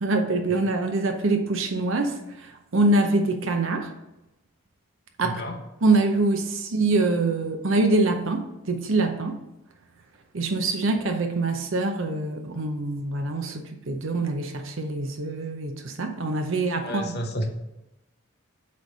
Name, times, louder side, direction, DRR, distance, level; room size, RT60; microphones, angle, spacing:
voice 1, 0.0-3.9 5.2-5.4 5.8-9.4 10.3-17.1, right 2 dB, 60° right, 5 dB, 0.7 m, -24 dB
voice 2, 5.2-5.6 16.8-17.5, equal, 45° left, 2 dB, 1.0 m, -31 dB
8.3 x 3.3 x 5.4 m, 0.93 s
head